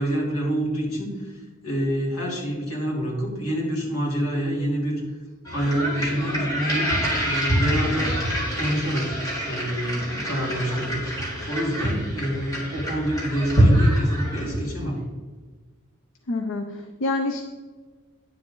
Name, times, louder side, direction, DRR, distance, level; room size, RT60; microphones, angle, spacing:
voice 1, 0.0-5.0 5.5-6.9 7.2-8.1 8.5-11.1 11.5-15.0, equal, 80° left, -2 dB, 2.9 m, -27 dB
sound 1, 5.5-14.8, equal, 15° left, 2.6 m, -25 dB
voice 2, 16.3-17.4, left 2 dB, 60° left, 6 dB, 0.6 m, -27 dB
10.0 x 7.2 x 3.8 m, 1.4 s
head